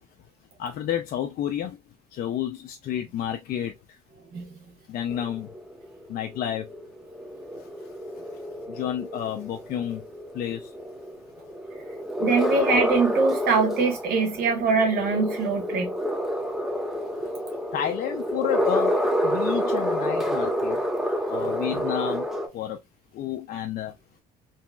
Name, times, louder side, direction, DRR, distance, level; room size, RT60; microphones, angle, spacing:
voice 1, 0.6-1.8 2.1-4.0 4.9-5.5 6.1-6.7 7.6-7.7 8.7-10.0 10.3-10.7 17.7-19.0 19.2-20.8 21.3-22.3 22.5-22.8 23.1-24.0, left 10 dB, 60° left, 0.5 m, -30 dB
sound 1, 5.1-22.5, equal, ahead, 0.7 m, -29 dB
voice 2, 12.2-15.9, right 4 dB, 70° right, 1.2 m, -23 dB
3.0 x 2.7 x 2.2 m
cardioid pair, 110°, 17 cm